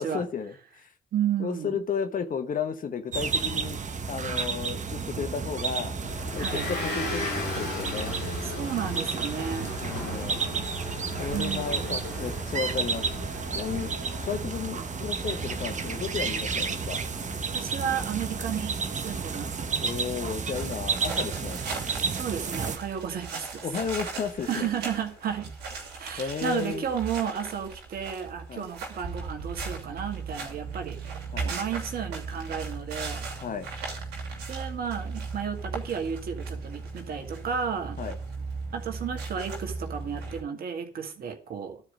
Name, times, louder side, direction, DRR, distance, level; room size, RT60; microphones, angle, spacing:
voice 1, 0.0-0.9 1.4-3.8 4.1-6.0 6.3-8.2 9.8-10.4 11.2-13.1 13.5-13.9 14.2-17.0 19.8-21.6 23.6-24.7 26.2-26.8 28.5-28.7 31.3-31.5 33.4-33.7 38.0-38.2, left 6 dB, 55° left, 1.5 m, -33 dB
voice 2, 1.1-1.8 6.4-6.7 8.4-9.7 11.3-12.1 17.5-19.5 22.1-23.7 24.5-25.5 25.9-33.2 34.5-38.0 38.7-41.8, right 8 dB, 65° right, 2.0 m, -33 dB
sound 1, 3.1-22.8, right 5 dB, 45° right, 1.3 m, -32 dB
Motor vehicle (road) / Engine, 6.0-20.3, left 2 dB, 75° left, 4.1 m, -38 dB
sound 2, 20.5-40.4, right 4 dB, 80° right, 2.7 m, -37 dB
12.0 x 4.9 x 7.6 m
hypercardioid pair, 45°, 17 cm